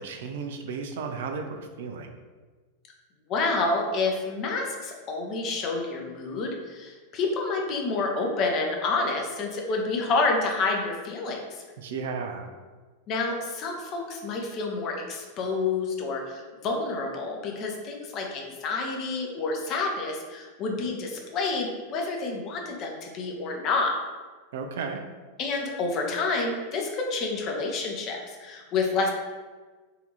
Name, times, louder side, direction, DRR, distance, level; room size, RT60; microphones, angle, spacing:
voice 1, 0.0-2.1 11.8-12.5 24.5-25.0, right 5 dB, 55° right, 5 dB, 0.4 m, -34 dB
voice 2, 3.3-11.6 13.1-23.9 25.4-29.1, left 3 dB, 35° left, 1 dB, 0.8 m, -29 dB
4.1 x 2.8 x 3.9 m, 1.4 s
figure-of-eight pair, 90°, 0 cm